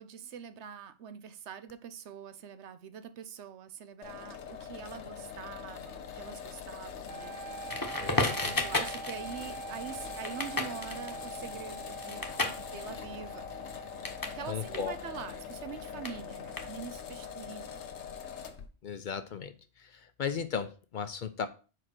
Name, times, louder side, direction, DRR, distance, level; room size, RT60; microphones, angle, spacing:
voice 1, 0.0-13.6 14.2-17.8, right 7 dB, 85° right, 1.0 m, -45 dB
sound 1, 4.0-18.7, left 7 dB, 85° left, 1.1 m, -43 dB
sound 2, 7.1-15.1, right 5 dB, 50° right, 0.7 m, -45 dB
Crackle, 7.7-14.4 14.7-17.1, left 2 dB, 20° left, 0.9 m, -35 dB
voice 2, 8.0-8.6 14.5-14.9 18.8-19.5 19.8-21.5, left 6 dB, 55° left, 0.6 m, -36 dB
4.9 x 4.8 x 6.0 m
omnidirectional pair, 1.1 m